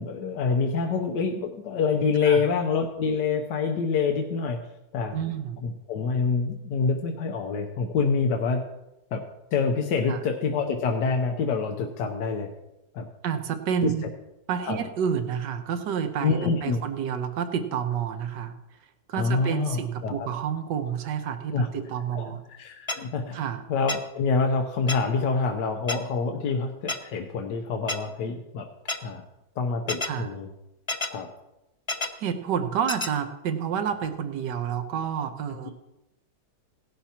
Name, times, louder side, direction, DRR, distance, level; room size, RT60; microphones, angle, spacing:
voice 1, 0.0-4.6 4.9-5.2 5.6-8.6 9.1-9.2 9.5-12.5 12.9-13.1 13.8-14.1 14.6-14.8 16.2-16.8 19.1-20.3 21.5-21.7 22.1-23.4 23.7-28.7 29.0-29.2 29.6-30.5 31.1-31.3 35.6-35.7, left 4 dB, 85° left, 3 dB, 1.5 m, -26 dB
voice 2, 5.1-5.6 10.1-10.2 13.2-14.0 14.5-18.5 19.1-22.4 23.3-23.6 30.1-30.3 32.2-35.7, right 8 dB, 85° right, 7 dB, 1.5 m, -29 dB
sound 1, 22.9-23.0 23.9-24.0 24.9-25.0 25.9-26.0 26.9-27.0 27.9-28.0 28.9-29.0 29.9-30.1 30.9-31.1 31.9-32.1 32.9-33.1, left 2 dB, 25° left, 0.7 m, -28 dB
17.5 x 11.5 x 2.9 m, 0.94 s
omnidirectional pair, 1.8 m